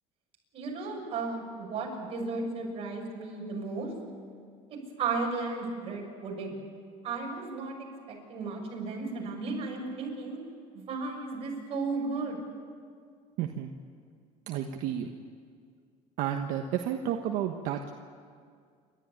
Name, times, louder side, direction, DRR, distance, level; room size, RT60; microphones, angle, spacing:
voice 1, 0.5-3.9 5.0-6.6 7.0-7.7 8.1-10.4 10.7-12.4, right 3 dB, 45° right, 0 dB, 6.6 m, -34 dB
voice 2, 13.4-13.7 14.5-15.1 16.2-17.9, right 10 dB, 75° right, 3 dB, 1.3 m, -31 dB
29.0 x 13.0 x 9.9 m, 2.1 s
cardioid pair, 145°, 14 cm